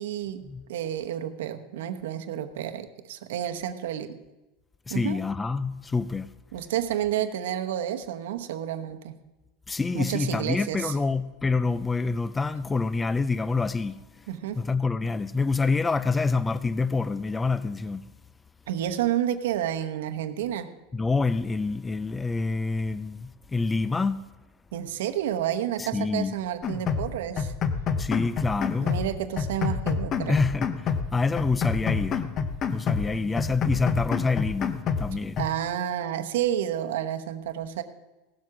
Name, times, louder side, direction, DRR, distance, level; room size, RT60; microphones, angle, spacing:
voice 1, 0.0-0.4 0.7-4.2 4.9-5.2 6.5-9.1 9.9-10.9 14.3-14.6 18.7-20.7 24.7-27.5 28.6-30.4 33.2-33.6 35.4-37.8, right 11 dB, 85° right, 1.0 m, -30 dB
voice 2, 4.9-6.3 9.7-14.3 14.5-18.1 20.9-24.2 25.8-26.4 28.0-29.0 30.3-32.2 32.7-35.4, left 4 dB, 10° left, 0.3 m, -27 dB
sound 1, 26.6-27.1 27.4-29.1 29.4-31.1 31.4-33.1 33.4-35.1 35.4-35.5, left 6 dB, 30° left, 0.8 m, -28 dB
16.5 x 7.7 x 6.0 m
supercardioid pair, 165°, 0 cm